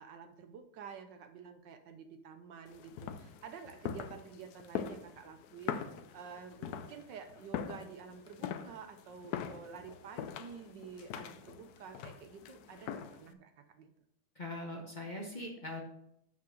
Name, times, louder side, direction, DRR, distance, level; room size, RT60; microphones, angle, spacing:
voice 1, 0.0-5.8 6.1-13.9, right 6 dB, 70° right, 7 dB, 1.3 m, -50 dB
sound 1, 2.7-13.3, left 8 dB, 90° left, 0.8 m, -43 dB
voice 2, 14.3-15.8, left 1 dB, 30° left, 0 dB, 1.0 m, -41 dB
6.1 x 5.7 x 6.3 m, 0.75 s
omnidirectional pair, 2.3 m